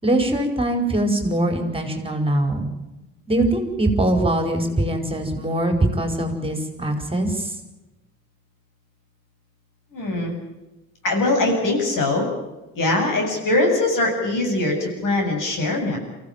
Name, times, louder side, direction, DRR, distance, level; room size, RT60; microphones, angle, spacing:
voice 1, 0.0-2.7 3.3-7.5, right 1 dB, 15° right, 5 dB, 4.9 m, -22 dB
voice 2, 9.9-10.3 11.0-12.3 12.7-16.0, left 2 dB, 60° left, 3 dB, 7.8 m, -22 dB
23.5 x 16.0 x 9.2 m, 1.0 s
hypercardioid pair, 60°, 37 cm